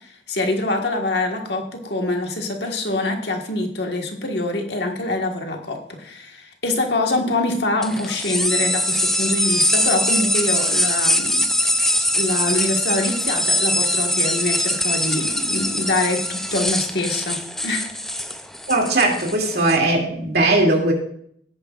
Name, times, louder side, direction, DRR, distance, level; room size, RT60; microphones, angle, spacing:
voice 1, 0.0-11.4 11.7-11.9 12.1-17.9, left 2 dB, 60° left, 3 dB, 1.6 m, -25 dB
sound 1, 7.8-19.8, left 1 dB, ahead, 0.5 m, -22 dB
voice 2, 18.7-20.9, right 2 dB, 55° right, 1 dB, 2.6 m, -19 dB
16.5 x 9.3 x 2.5 m, 0.67 s
head